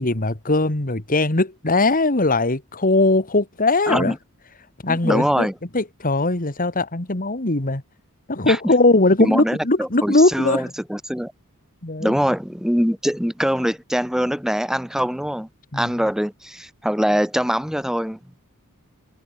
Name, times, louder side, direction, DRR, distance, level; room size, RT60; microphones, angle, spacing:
voice 1, 0.0-4.2 4.8-5.5 5.7-7.8 8.3-10.7 11.8-12.1 15.7-15.9, left 2 dB, 40° left, 2.1 m, -20 dB
voice 2, 4.9-5.5 8.4-8.6 9.2-11.3 12.0-15.5 15.7-18.2, equal, ahead, 1.5 m, -23 dB
head